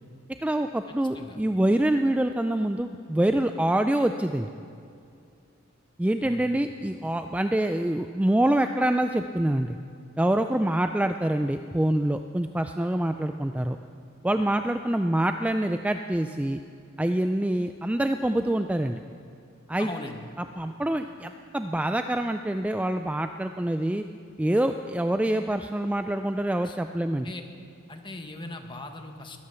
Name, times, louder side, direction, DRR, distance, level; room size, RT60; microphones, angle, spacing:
voice 1, 0.4-4.5 6.0-9.8 10.2-13.8 14.2-16.6 17.0-19.0 19.7-19.9 20.6-24.0 24.4-27.3, right 1 dB, 5° right, 7 dB, 0.3 m, -25 dB
voice 2, 19.8-20.3 26.6-27.4 27.9-29.4, left 2 dB, 25° left, 5 dB, 1.3 m, -40 dB
21.0 x 9.8 x 6.9 m, 2.4 s
head